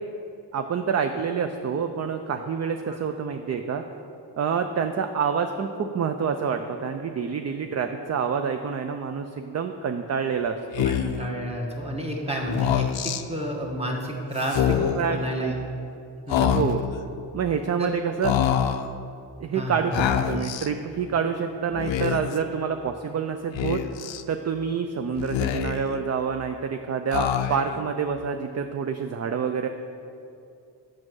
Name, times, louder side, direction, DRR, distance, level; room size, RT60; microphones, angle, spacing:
voice 1, 0.5-3.8 4.4-10.9 14.7-15.5 16.4-16.8 17.3-18.4 19.4-23.8 24.3-29.7, right 6 dB, 40° right, 7 dB, 0.4 m, -27 dB
Speech, 10.7-11.3 12.4-13.2 14.4-15.1 16.3-17.0 18.2-18.9 19.9-20.7 21.7-22.4 23.5-24.2 25.1-26.0 27.1-27.8, left 10 dB, 85° left, 0.5 m, -25 dB
voice 2, 10.8-15.6 16.3-16.6 17.8-17.9 19.5-20.1, equal, 15° right, -1 dB, 1.3 m, -31 dB
7.4 x 6.4 x 6.2 m, 2.5 s
wide cardioid pair, 115°, 44 cm